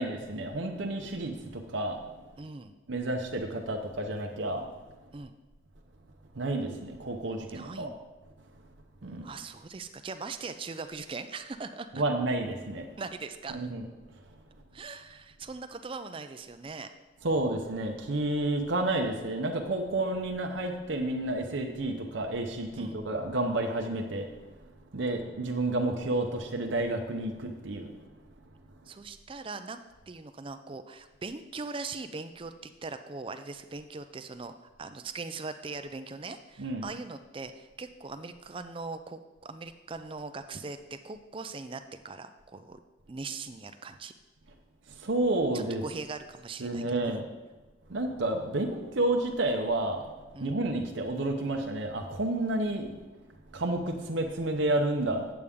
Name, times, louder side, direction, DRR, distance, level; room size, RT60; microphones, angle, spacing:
voice 1, 0.0-2.0 2.9-4.7 6.3-7.9 9.0-9.3 11.9-13.0 13.5-13.9 14.1-14.2 17.2-24.3 24.9-27.9 36.6-36.9 44.9-45.8 46.6-47.3 47.9-50.1 50.4-52.9 53.5-55.3, right 2 dB, 75° right, 2 dB, 0.8 m, -30 dB
voice 2, 2.4-2.7 5.1-5.3 7.5-8.0 9.2-11.9 13.0-13.7 14.7-16.9 22.8-23.0 28.9-29.8 30.1-42.8 43.1-44.1 45.5-47.2 50.3-50.6, right 4 dB, 25° right, 9 dB, 0.4 m, -40 dB
8.5 x 7.9 x 3.6 m, 1.2 s
head